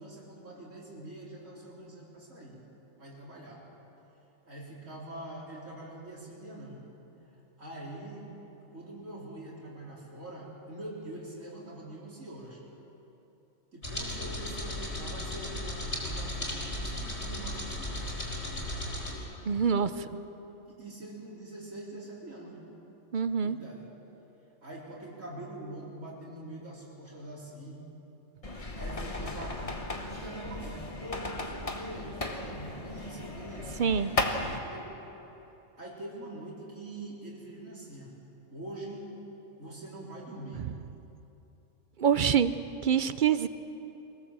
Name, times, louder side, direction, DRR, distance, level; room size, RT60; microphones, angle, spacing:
voice 1, 0.0-2.6 3.0-3.6 4.5-6.8 7.6-8.3 8.7-12.6 13.7-18.2 19.6-20.2 20.7-22.7 23.4-23.9 24.6-27.8 28.8-33.8 34.6-34.9 35.8-38.1 38.5-39.1 39.6-40.6, right 1 dB, 80° right, -4 dB, 4.5 m, -44 dB
sound 1, 13.8-19.2, left 1 dB, 55° left, 4.6 m, -36 dB
voice 2, 19.5-19.9 23.1-23.6 33.8-34.1 42.0-42.5 42.8-43.5, right 7 dB, 50° right, 12 dB, 0.7 m, -25 dB
sound 2, 28.4-34.6, left 2 dB, 25° left, 1.4 m, -35 dB
24.0 x 17.5 x 7.4 m, 3.0 s
omnidirectional pair, 1.3 m